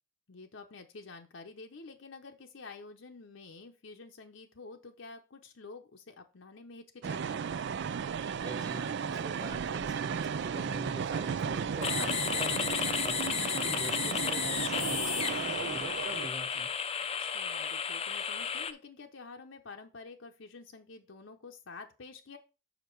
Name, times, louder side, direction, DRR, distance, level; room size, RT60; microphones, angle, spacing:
voice 1, 0.3-7.4 17.2-22.4, left 3 dB, 70° left, 4 dB, 0.8 m, -49 dB
sound 1, 7.0-16.3, right 6 dB, 60° right, 0.4 m, -35 dB
voice 2, 8.4-13.2 13.5-16.7, right 1 dB, 20° right, 4 dB, 1.4 m, -44 dB
sound 2, 11.8-18.7, left 7 dB, 30° left, 0.5 m, -33 dB
6.6 x 5.1 x 4.5 m, 0.30 s
head